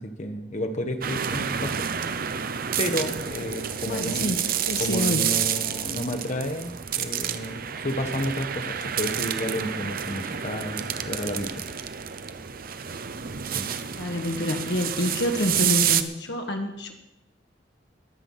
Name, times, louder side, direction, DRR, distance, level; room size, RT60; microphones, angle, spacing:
voice 1, 0.0-1.9 2.8-4.3 4.8-11.7 13.4-13.7, equal, 40° left, 6 dB, 1.2 m, -31 dB
sound 1, 1.0-16.0, right 8 dB, 50° right, 0.8 m, -29 dB
voice 2, 3.8-5.3 14.0-16.9, left 1 dB, 65° left, 3 dB, 1.7 m, -27 dB
21.0 x 8.1 x 5.6 m, 0.84 s
head